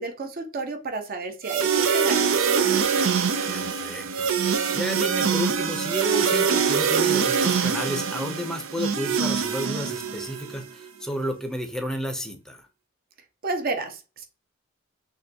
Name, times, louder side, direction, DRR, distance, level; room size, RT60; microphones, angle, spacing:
voice 1, 0.0-2.9 13.4-14.2, right 3 dB, 45° right, 5 dB, 0.7 m, -32 dB
sound 1, 1.4-10.6, right 6 dB, 90° right, 0.6 m, -24 dB
voice 2, 3.5-4.3 4.7-12.6, equal, 5° left, 5 dB, 0.6 m, -32 dB
6.3 x 2.2 x 2.7 m, 0.33 s
head